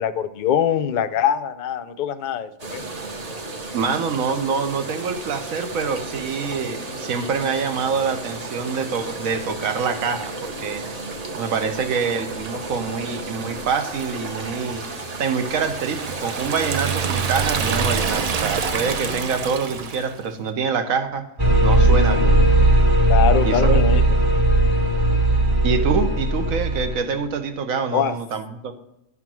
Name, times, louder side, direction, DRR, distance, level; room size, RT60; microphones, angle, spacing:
voice 1, 0.0-2.8 23.1-24.0 27.9-28.1, left 9 dB, 70° left, 9 dB, 0.4 m, -23 dB
sound 1, 2.6-19.2, right 3 dB, 35° right, 0.8 m, -33 dB
voice 2, 3.7-10.8 11.3-14.8 15.2-21.3 21.6-22.4 23.4-23.8 25.6-28.7, right 5 dB, 85° right, 7 dB, 1.3 m, -25 dB
Liquid, 15.6-20.2, right 6 dB, 65° right, 0.3 m, -26 dB
sound 2, 21.4-27.1, right 1 dB, 20° right, 1.1 m, -17 dB
11.0 x 3.6 x 6.0 m, 0.86 s
omnidirectional pair, 1.4 m